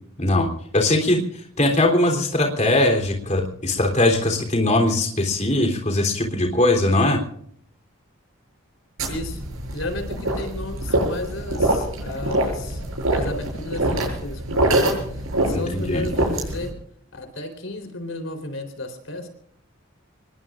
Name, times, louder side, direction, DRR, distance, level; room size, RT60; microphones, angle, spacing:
voice 1, 0.2-0.5 0.7-7.2 15.7-16.0, left 1 dB, 30° left, 2 dB, 3.4 m, -20 dB
sound 1, 9.0-16.7, right 1 dB, 75° right, 7.5 m, -24 dB
voice 2, 9.1-9.4 9.7-12.8 13.1-16.8 17.1-19.3, left 2 dB, 70° left, 7 dB, 3.9 m, -33 dB
26.0 x 21.0 x 2.5 m, 0.64 s
head